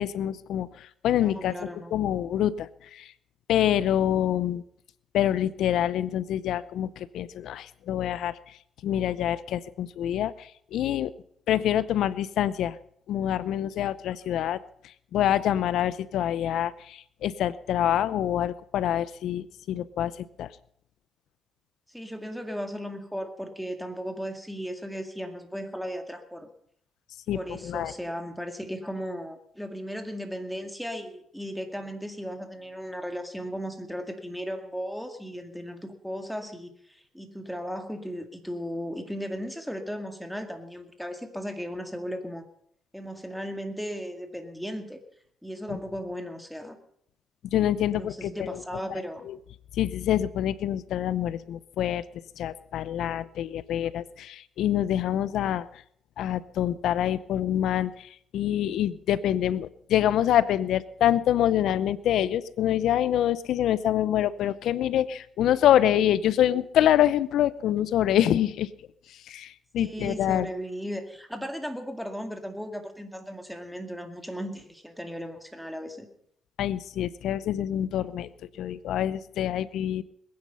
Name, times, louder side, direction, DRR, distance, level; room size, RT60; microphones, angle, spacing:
voice 1, 0.0-1.5 1.9-3.1 3.5-4.6 5.1-8.4 8.8-11.1 11.5-12.8 13.1-14.6 15.1-20.1 20.4-20.5 27.3-27.9 45.7-45.8 47.5-48.6 49.3-49.4 49.8-52.0 52.4-55.7 56.2-68.7 69.3-70.5 76.6-78.3 78.6-80.0, left 11 dB, 80° left, 18 dB, 0.6 m, -26 dB
voice 2, 1.2-1.9 21.9-26.5 27.3-42.5 42.9-45.0 45.4-46.8 47.9-49.3 69.8-76.1, equal, ahead, 6 dB, 2.1 m, -36 dB
21.0 x 9.6 x 5.6 m, 0.69 s
cardioid pair, 90°, 0 cm